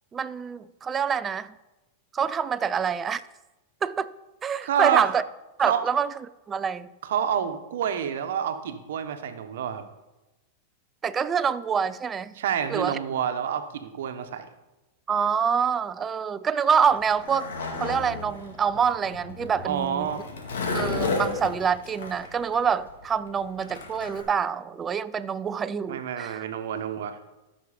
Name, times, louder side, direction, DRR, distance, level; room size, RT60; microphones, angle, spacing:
voice 1, 0.1-1.5 2.1-3.2 3.8-4.1 4.4-5.2 5.6-6.1 6.5-6.9 11.0-12.3 12.7-13.0 15.1-17.5 17.8-20.1 20.7-26.4, right 7 dB, 25° right, 0.4 m, -26 dB
voice 2, 4.6-5.1 5.6-5.8 7.0-9.8 12.4-14.5 19.6-20.2 25.9-27.3, right 8 dB, 75° right, 1.0 m, -28 dB
Skateboard, 16.8-24.2, left 3 dB, 80° left, 2.1 m, -33 dB
13.5 x 6.1 x 5.1 m
hypercardioid pair, 115°, 0 cm